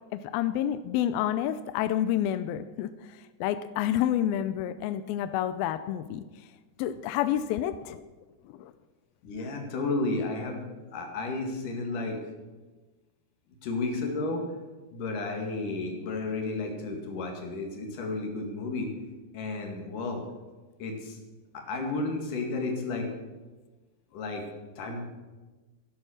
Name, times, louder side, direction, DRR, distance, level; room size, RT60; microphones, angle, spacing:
voice 1, 0.1-2.9 3.4-6.2 6.8-8.0 8.5-8.7, left 11 dB, 85° left, 12 dB, 2.1 m, -29 dB
voice 2, 9.2-10.6 10.9-12.2 13.6-14.6 14.9-18.9 19.3-20.2 20.8-21.2 21.5-23.1 24.1-24.5 24.8-25.0, left 3 dB, 55° left, 2 dB, 3.4 m, -32 dB
13.5 x 11.0 x 6.5 m, 1.2 s
omnidirectional pair, 4.8 m